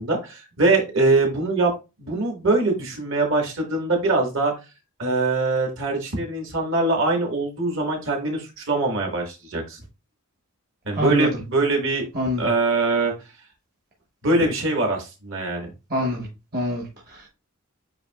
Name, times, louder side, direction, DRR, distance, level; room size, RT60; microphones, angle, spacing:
voice 1, 0.0-1.7 2.0-4.5 5.0-9.8 10.8-12.0 12.4-13.1 14.2-15.7, right 2 dB, 65° right, 1.6 m, -23 dB
voice 2, 10.9-11.3 12.1-12.4 15.9-16.3 16.5-17.3, equal, 45° right, 1.1 m, -25 dB
8.1 x 2.8 x 2.3 m
head